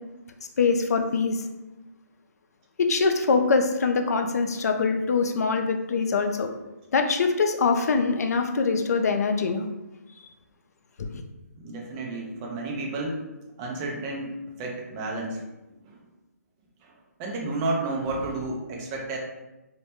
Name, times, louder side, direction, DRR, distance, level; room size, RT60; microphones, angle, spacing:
voice 1, 0.6-1.4 2.8-6.5 6.9-9.6 11.0-11.2, left 4 dB, 70° left, 5 dB, 0.4 m, -23 dB
voice 2, 11.6-13.2 13.6-14.3 14.6-15.4 15.9-16.0 16.8-16.9 17.2-19.2, right 2 dB, 20° right, -1 dB, 0.4 m, -31 dB
2.1 x 2.1 x 2.8 m, 1.0 s
hypercardioid pair, 155°, 9 cm